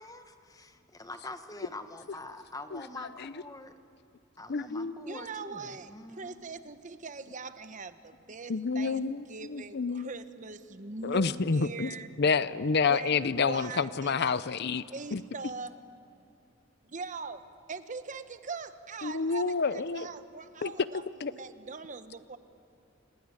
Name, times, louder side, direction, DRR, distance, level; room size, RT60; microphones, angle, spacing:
voice 1, 0.0-3.7 4.4-6.4, left 2 dB, 20° left, 8 dB, 1.3 m, -45 dB
voice 2, 4.5-4.9 8.5-10.1 11.0-14.8 15.1-15.2 19.0-20.1 20.6-20.7 21.2-21.3, left 5 dB, 55° left, 15 dB, 0.6 m, -29 dB
voice 3, 5.1-12.1 12.9-14.4 14.9-15.7 16.9-21.0 21.3-22.4, right 4 dB, 40° right, 11 dB, 1.0 m, -42 dB
29.0 x 19.5 x 9.6 m, 2.7 s
head